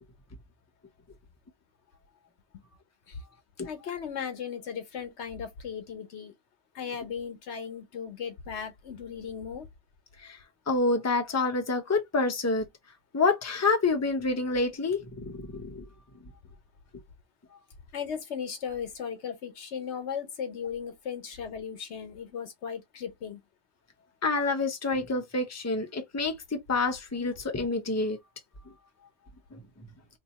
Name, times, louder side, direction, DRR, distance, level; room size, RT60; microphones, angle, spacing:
voice 1, 3.6-6.3 6.7-9.6 17.9-23.4, left 7 dB, 85° left, 1.2 m, -37 dB
voice 2, 10.7-12.7 13.1-15.9 24.2-28.2 29.5-29.6, left 3 dB, 15° left, 0.7 m, -28 dB
2.8 x 2.8 x 4.0 m
omnidirectional pair, 1.1 m